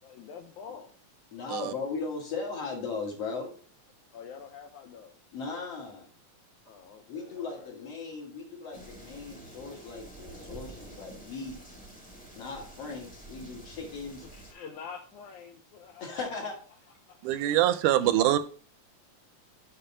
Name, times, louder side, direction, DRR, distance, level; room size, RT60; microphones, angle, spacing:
voice 1, 0.0-0.9 4.1-5.2 6.6-7.9 11.5-11.6 13.7-13.8 14.2-16.4 17.0-17.9, left 6 dB, 80° left, 2.1 m, -47 dB
voice 2, 1.3-3.5 5.3-6.1 7.1-11.8 12.3-14.2 16.0-16.5, left 4 dB, 55° left, 2.6 m, -37 dB
sound 1, 8.7-14.5, right 1 dB, 5° left, 0.8 m, -48 dB
voice 3, 17.2-18.4, right 13 dB, 85° right, 2.0 m, -24 dB
6.7 x 5.4 x 5.6 m
omnidirectional pair, 3.6 m